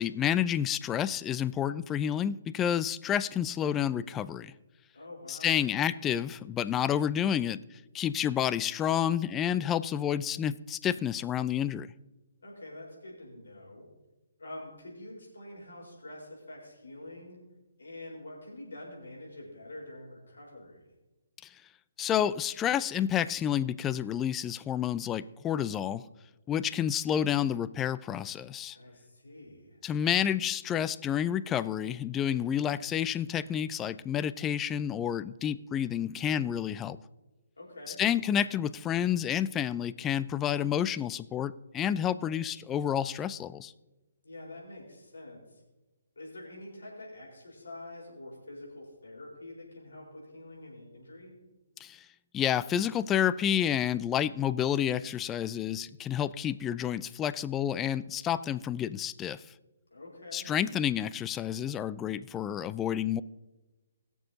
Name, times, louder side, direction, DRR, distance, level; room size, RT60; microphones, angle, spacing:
voice 1, 0.0-4.5 5.3-7.6 7.9-11.9 22.0-26.0 26.5-28.8 29.8-37.0 38.0-43.7 51.8-52.0 52.3-59.4 60.3-63.2, left 9 dB, 15° left, 15 dB, 0.3 m, -29 dB
voice 2, 4.9-5.6 12.4-13.9 14.4-17.4 17.8-20.9 28.7-29.8 37.6-38.0 44.2-45.6 46.2-51.3 59.9-60.5, left 1 dB, 70° left, -3 dB, 4.3 m, -46 dB
21.0 x 7.0 x 2.8 m, 1.1 s
figure-of-eight pair, 135°, 0 cm